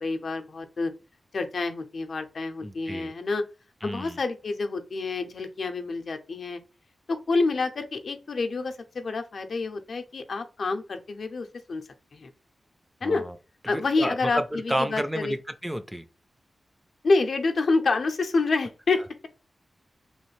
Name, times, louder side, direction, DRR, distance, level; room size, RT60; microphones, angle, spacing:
voice 1, 0.0-0.9 1.3-3.4 3.8-6.6 7.1-11.8 12.1-12.3 13.0-13.2 13.7-15.3 17.0-19.3, left 3 dB, 65° left, 0.5 m, -28 dB
voice 2, 2.6-3.1 3.8-4.2 13.0-13.4 13.7-16.0, equal, 5° right, 0.3 m, -31 dB
3.1 x 2.4 x 3.1 m
wide cardioid pair, 130°, 0 cm